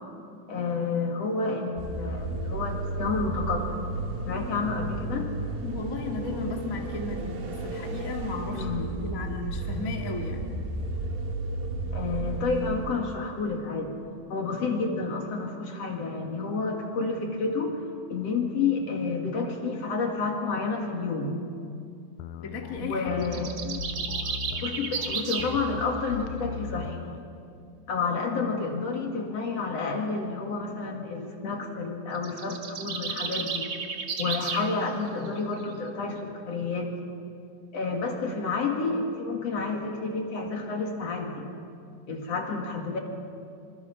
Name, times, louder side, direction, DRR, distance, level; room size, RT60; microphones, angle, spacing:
voice 1, 0.5-3.8 4.3-5.3 8.5-8.9 11.9-13.9 14.3-17.8 18.1-21.4 22.8-23.5 24.6-27.1 27.9-33.7 34.2-36.9 37.7-41.5 42.1-43.0, left 4 dB, 50° left, 2 dB, 2.7 m, -30 dB
sound 1, 1.8-13.0, right 2 dB, 75° right, 3.9 m, -33 dB
voice 2, 5.6-8.7 9.0-10.5 22.4-23.3, left 3 dB, 30° left, 1 dB, 1.6 m, -35 dB
sound 2, 22.2-27.2, left 6 dB, 80° left, 1.8 m, -38 dB
sound 3, 23.2-25.5 32.1-34.7, right 5 dB, 45° right, 1.5 m, -33 dB
25.5 x 25.5 x 5.8 m, 2.5 s
omnidirectional pair, 4.3 m